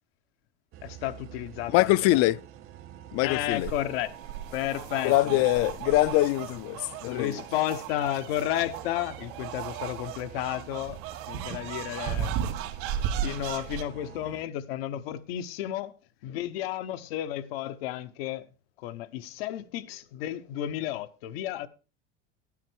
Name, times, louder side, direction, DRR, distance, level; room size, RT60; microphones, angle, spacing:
sound 1, 0.7-14.4, right 11 dB, 45° right, 1.1 m, -47 dB
voice 1, 0.8-2.2 3.2-4.1 4.5-5.7 7.1-11.0 11.3-12.3 13.2-15.9 16.2-18.5 18.8-21.7, left 13 dB, 90° left, 1.0 m, -32 dB
voice 2, 1.7-2.4 3.1-3.7 5.0-7.4, left 17 dB, 55° left, 0.5 m, -23 dB
sound 2, 3.5-13.8, right 9 dB, 70° right, 2.4 m, -36 dB
12.0 x 9.8 x 4.5 m
supercardioid pair, 130°, 29 cm